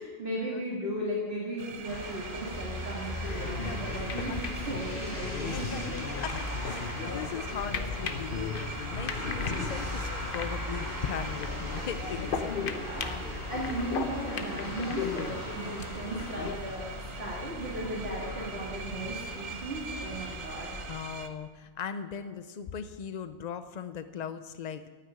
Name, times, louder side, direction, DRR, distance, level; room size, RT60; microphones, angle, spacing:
voice 1, 0.0-6.0 7.5-7.7 12.7-16.9 17.2-20.8, right 1 dB, 50° right, -5 dB, 2.3 m, -36 dB
sound 1, 1.6-21.3, right 6 dB, 85° right, 1.2 m, -44 dB
sound 2, 1.8-20.8, left 1 dB, 15° left, 3.7 m, -39 dB
sound 3, 3.2-16.5, left 5 dB, 50° left, 0.9 m, -37 dB
voice 2, 6.2-12.7 20.9-24.8, left 7 dB, 70° left, 11 dB, 0.4 m, -38 dB
9.3 x 9.1 x 9.7 m, 1.5 s
omnidirectional pair, 1.3 m